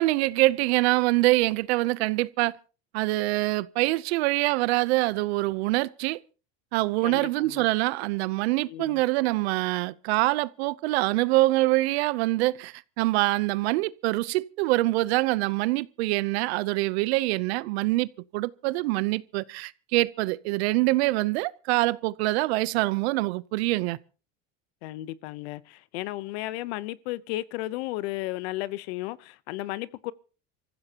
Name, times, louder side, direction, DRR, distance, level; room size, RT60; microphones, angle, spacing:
voice 1, 0.0-2.5 2.9-6.2 6.7-18.1 18.3-24.0, right 20 dB, 90° right, 0.8 m, -25 dB
voice 2, 7.0-7.7 8.7-9.0 24.8-30.1, left 17 dB, 85° left, 0.9 m, -34 dB
25.5 x 15.0 x 2.9 m
supercardioid pair, 110°, 31 cm